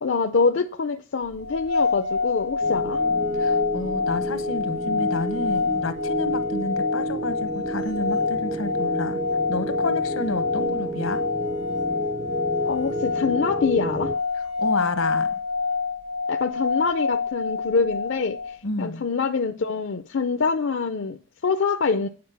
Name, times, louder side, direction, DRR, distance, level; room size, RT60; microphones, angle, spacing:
voice 1, 0.0-3.0 12.6-14.1 16.3-22.1, left 4 dB, 60° left, 0.5 m, -25 dB
sound 1, 1.4-18.6, left 4 dB, 55° right, 0.8 m, -27 dB
sound 2, 2.6-14.1, right 1 dB, 25° right, 0.4 m, -31 dB
voice 2, 3.3-9.2 9.5-11.2 14.6-15.4 18.6-19.0, left 2 dB, 85° left, 1.1 m, -30 dB
9.4 x 4.7 x 7.0 m
head